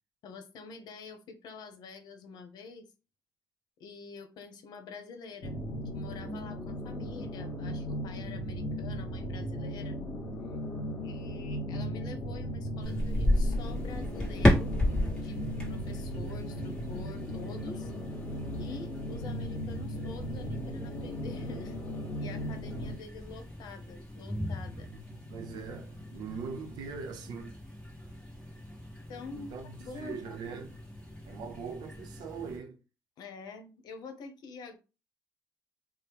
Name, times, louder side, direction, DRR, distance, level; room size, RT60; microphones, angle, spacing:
voice 1, 0.2-2.9 3.8-5.6 5.9-10.1 11.0-14.8 15.1-15.4 15.7-17.9 18.6-24.9 29.1-29.5 29.8-30.3 33.2-34.8, left 4 dB, 75° left, 0.8 m, -46 dB
sound 1, 5.4-22.9, equal, 40° left, 1.2 m, -37 dB
sound 2, 12.8-32.6, left 1 dB, 10° left, 1.2 m, -34 dB
voice 2, 24.7-27.6 29.3-30.8 31.3-32.8, right 5 dB, 75° right, 0.6 m, -42 dB
4.4 x 2.0 x 3.4 m
cardioid pair, 170°, 7 cm